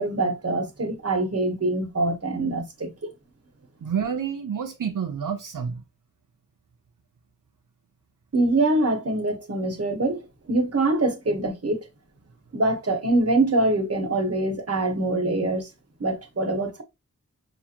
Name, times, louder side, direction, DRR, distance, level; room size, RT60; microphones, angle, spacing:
voice 1, 0.0-3.1 8.3-10.2 10.5-11.8 12.5-15.7 16.0-16.8, right 2 dB, 50° right, 1.2 m, -24 dB
voice 2, 3.8-5.8, right 7 dB, 80° right, 0.6 m, -29 dB
6.0 x 2.6 x 2.8 m
wide cardioid pair, 80°, 31 cm